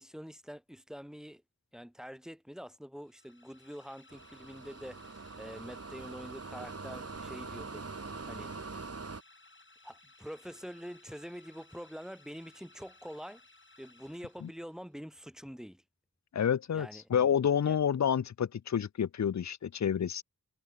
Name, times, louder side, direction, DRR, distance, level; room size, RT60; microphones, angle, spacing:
voice 1, 0.0-1.4 1.7-8.5 9.8-13.4 13.8-15.8 16.7-17.0 17.6-17.8, equal, ahead, 4.5 m, -46 dB
sound 1, 3.0-14.9, left 3 dB, 35° left, 5.2 m, -60 dB
sound 2, 4.1-9.2, right 4 dB, 45° right, 2.9 m, -43 dB
voice 2, 16.3-20.2, left 8 dB, 55° left, 0.6 m, -29 dB
wide cardioid pair, 85°, 33 cm